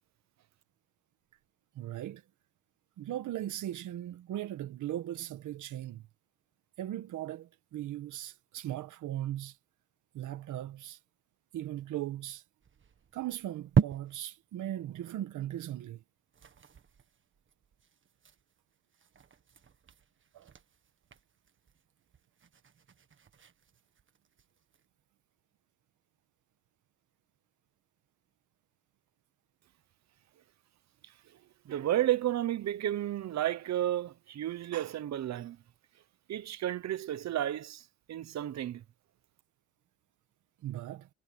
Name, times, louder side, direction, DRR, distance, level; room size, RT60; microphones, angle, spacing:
voice 1, 1.8-2.2 3.0-6.1 6.8-9.5 10.1-11.0 11.5-12.4 13.1-16.0 20.3-20.5 40.6-41.1, right 13 dB, 80° right, 1.7 m, -38 dB
sound 1, 12.6-14.5 14.9-15.0 15.3-15.4 15.7-15.9 16.2-24.8, right 7 dB, 40° right, 1.7 m, -38 dB
voice 2, 31.7-35.6 36.3-37.8 38.1-38.8, right 12 dB, 60° right, 1.1 m, -32 dB
cardioid pair, 90°, 30 cm